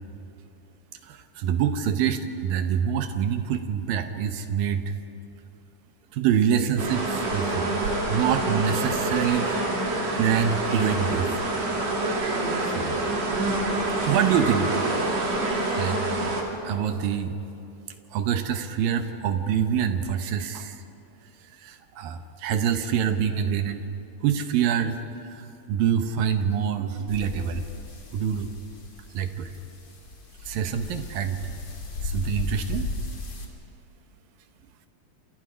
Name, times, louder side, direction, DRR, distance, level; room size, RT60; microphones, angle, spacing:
voice 1, 1.0-4.9 6.1-7.8 8.1-9.9 10.1-11.4 12.7-13.1 13.9-14.8 15.7-16.0 16.6-17.4 18.1-20.8 21.5-23.9 24.2-27.7 28.1-28.5 29.1-29.5 30.4-31.5 32.0-32.9, right 8 dB, 70° right, 8 dB, 2.3 m, -26 dB
sound 1, 6.8-16.4, right 2 dB, 40° right, 3.6 m, -26 dB
sound 2, 27.1-33.4, left 2 dB, 30° left, 2.4 m, -36 dB
28.5 x 27.0 x 5.1 m, 2.8 s
omnidirectional pair, 5.0 m